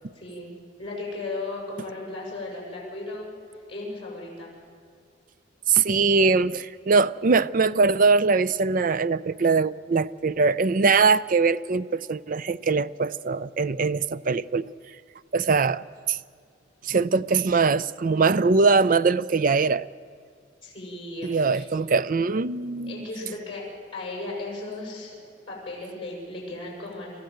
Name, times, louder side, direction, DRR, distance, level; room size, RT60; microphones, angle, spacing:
voice 1, 0.1-0.5 0.8-3.3 3.7-4.5 20.6-21.7 22.9-23.6 23.9-25.2 25.5-27.2, left 2 dB, 30° left, 6.6 m, -36 dB
voice 2, 5.7-14.7 15.3-16.2 16.8-19.9 21.2-23.1, right 4 dB, 45° right, 0.5 m, -22 dB
27.0 x 14.5 x 7.7 m
head